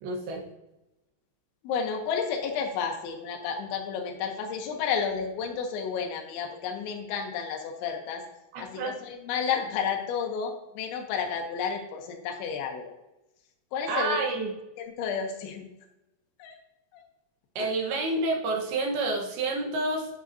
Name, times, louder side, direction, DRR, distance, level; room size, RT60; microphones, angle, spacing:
voice 1, 0.0-0.4 8.5-9.0 13.9-14.5 17.6-20.1, right 2 dB, 70° right, 1 dB, 2.9 m, -29 dB
voice 2, 1.6-8.2 8.6-12.9 13.7-14.2 14.8-15.7 16.4-16.6 16.9-17.0 17.6-17.7, left 6 dB, 90° left, 3 dB, 3.4 m, -31 dB
9.2 x 8.8 x 2.7 m, 0.92 s
omnidirectional pair, 5.1 m